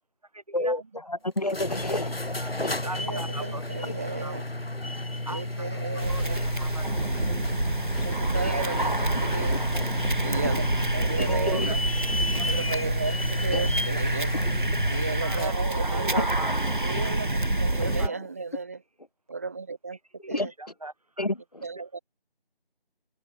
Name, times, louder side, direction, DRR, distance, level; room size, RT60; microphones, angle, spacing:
voice 1, 0.3-0.8 2.4-2.5 2.8-3.6 4.2-4.3 5.3-5.4 6.1-6.9 8.4-8.7 9.5-9.7 11.3-11.8 15.2-16.5 16.8-17.1 18.0-18.1 20.2-21.3, right 2 dB, 40° right, 6.1 m, -38 dB
voice 2, 1.1-2.8 3.2-3.3 3.8-3.9 6.4-6.5 8.4-8.8 9.4-9.6 11.2-11.7 12.3-12.4 13.5-13.7 18.0-18.1 20.3-20.5 21.2-21.7, left 1 dB, 40° left, 2.2 m, -31 dB
sound 1, 1.4-15.6, left 1 dB, 90° left, 2.3 m, -32 dB
voice 3, 3.0-4.4 5.3-6.4 8.0-9.6 10.2-10.7 10.9-11.8 12.4-14.3 14.9-16.3 16.8-18.8 19.3-20.0 20.3-20.5 21.6-22.0, right 4 dB, 15° right, 7.1 m, -34 dB
sound 2, 6.0-18.1, right 2 dB, 60° right, 2.6 m, -27 dB
open air
figure-of-eight pair, 175°, 29 cm